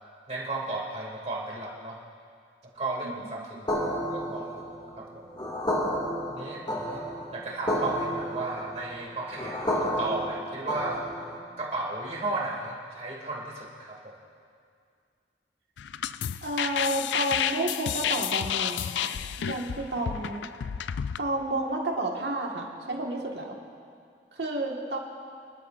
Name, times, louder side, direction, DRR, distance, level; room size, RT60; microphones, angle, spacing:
voice 1, 0.3-2.0 2.7-3.7 4.1-4.6 5.0-5.2 6.3-7.0 7.3-11.0 11.6-14.2, right 2 dB, 35° right, -3 dB, 2.5 m, -34 dB
sound 1, 3.7-11.5, equal, 25° left, 2.1 m, -31 dB
sound 2, 15.8-21.2, left 9 dB, 75° left, 0.3 m, -31 dB
voice 2, 16.4-19.1 19.4-20.4 21.2-23.5 24.3-25.0, right 1 dB, 70° right, 0 dB, 1.7 m, -31 dB
26.0 x 12.0 x 2.6 m, 2.2 s
head